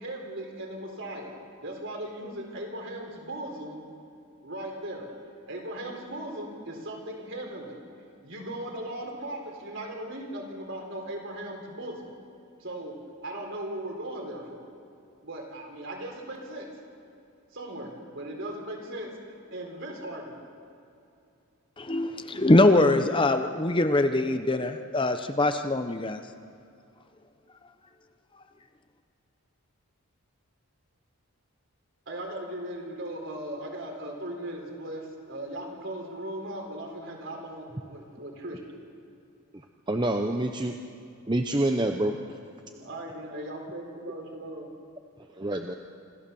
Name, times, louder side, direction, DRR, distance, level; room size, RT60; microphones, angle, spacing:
voice 1, 0.0-1.3 1.6-3.8 4.4-5.1 5.5-7.8 8.2-12.1 12.6-13.0 13.2-14.7 15.2-16.7 17.5-19.2 19.5-20.4 32.1-38.6 42.8-44.7, right 1 dB, 55° right, 1 dB, 4.0 m, -38 dB
voice 2, 21.8-26.2, left 2 dB, 20° left, 8 dB, 0.7 m, -23 dB
voice 3, 39.9-40.7 41.3-42.2 45.4-45.8, right 1 dB, 20° right, 4 dB, 0.7 m, -26 dB
26.5 x 15.0 x 7.0 m, 2.6 s
head